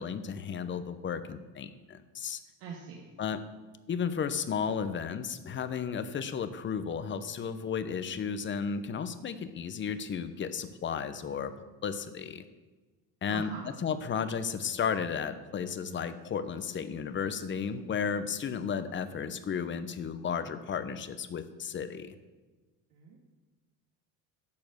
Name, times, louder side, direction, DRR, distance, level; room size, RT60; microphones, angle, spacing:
voice 1, 0.0-2.4 3.2-3.4 3.9-11.5 11.8-12.4 13.2-22.1, left 6 dB, 30° left, 12 dB, 0.8 m, -34 dB
voice 2, 2.6-3.1 13.3-13.7 22.9-23.2, right 6 dB, 85° right, -2 dB, 1.8 m, -43 dB
11.0 x 6.9 x 6.6 m, 1.3 s
cardioid pair, 120°, 38 cm